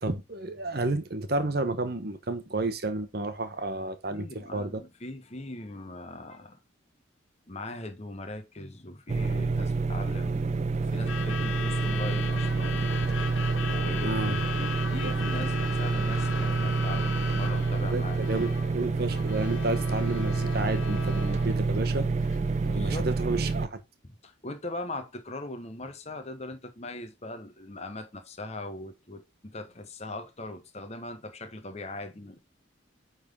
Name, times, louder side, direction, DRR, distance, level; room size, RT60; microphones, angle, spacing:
voice 1, 0.0-4.8 14.0-14.4 15.0-15.3 17.9-22.1 22.7-23.8, right 2 dB, 50° right, 1.0 m, -31 dB
voice 2, 4.1-6.6 7.5-13.1 13.6-18.2 22.5-23.1 24.0-32.4, left 2 dB, 35° left, 1.0 m, -40 dB
sound 1, 9.1-23.7, right 4 dB, 35° right, 0.3 m, -28 dB
Truck / Alarm, 10.8-22.8, left 5 dB, 80° left, 1.0 m, -38 dB
8.7 x 3.8 x 3.6 m
head